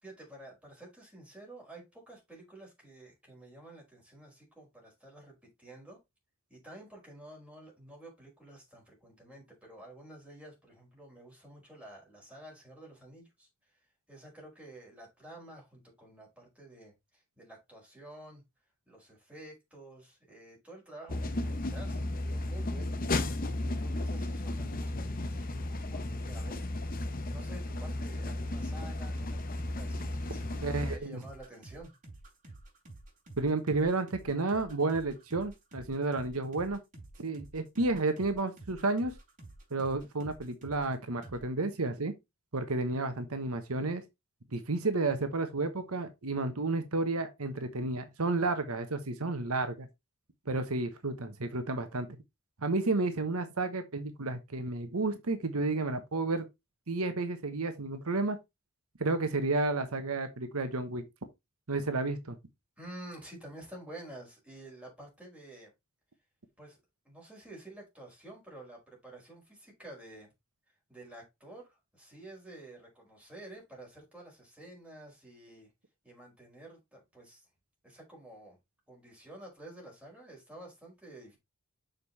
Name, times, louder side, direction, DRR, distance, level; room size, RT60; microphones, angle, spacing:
voice 1, 0.0-6.0 6.5-13.5 14.1-18.4 18.9-23.0 23.7-27.0 27.3-31.9 62.8-65.7 66.6-66.8 67.0-70.3 70.9-75.7 76.0-77.5 77.8-78.6 78.9-81.4, right 1 dB, 5° right, 4.9 m, -50 dB
sound 1, 21.1-31.0, left 1 dB, 40° left, 0.9 m, -34 dB
sound 2, 28.4-40.9 41.2-41.4, right 2 dB, 40° right, 4.6 m, -50 dB
voice 2, 30.6-31.2 33.4-36.8 37.2-39.1 39.7-42.2 42.5-44.0 44.5-49.9 50.5-52.1 52.6-56.5 56.9-58.4 59.0-61.0 61.7-62.4, right 3 dB, 85° right, 1.2 m, -31 dB
6.8 x 5.3 x 4.1 m
head